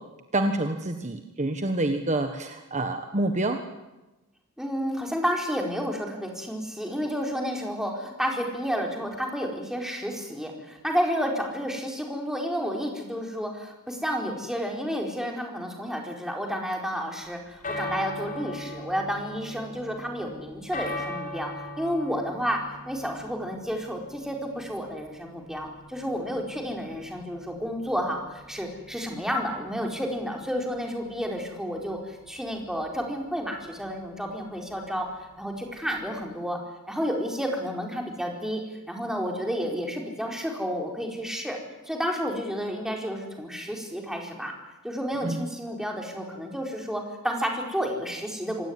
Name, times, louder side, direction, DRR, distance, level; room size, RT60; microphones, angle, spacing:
voice 1, 0.3-3.6 45.2-45.4, right 2 dB, 35° right, 6 dB, 1.4 m, -27 dB
voice 2, 4.6-21.5 21.8-22.6 22.9-35.1 35.4-36.6 36.9-38.6 38.9-41.6 41.9-44.5 44.8-48.7, equal, ahead, 1 dB, 4.5 m, -31 dB
sound 1, 17.5-36.3, left 1 dB, 40° left, 4.7 m, -41 dB
26.5 x 17.5 x 9.7 m, 1.1 s
head